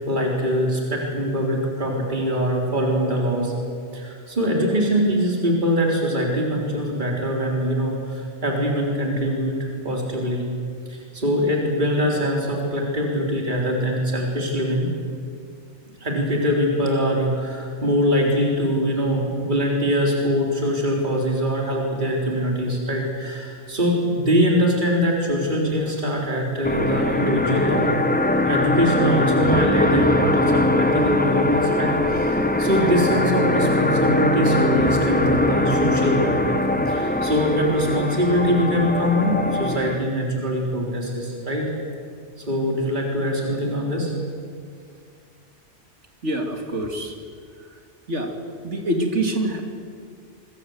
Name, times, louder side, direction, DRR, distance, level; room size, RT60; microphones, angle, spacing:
voice 1, 0.0-3.5 3.9-9.6 9.8-10.4 10.9-14.9 16.0-28.0 28.5-36.6 36.9-41.7 42.5-44.1, equal, 40° right, -1 dB, 4.2 m, -23 dB
sound 1, 26.6-40.0, left 2 dB, 10° left, 1.1 m, -21 dB
voice 2, 46.2-47.1 48.1-48.3 48.6-49.6, right 1 dB, 70° right, 3 dB, 3.1 m, -25 dB
25.5 x 23.5 x 8.1 m, 2.2 s
omnidirectional pair, 1.2 m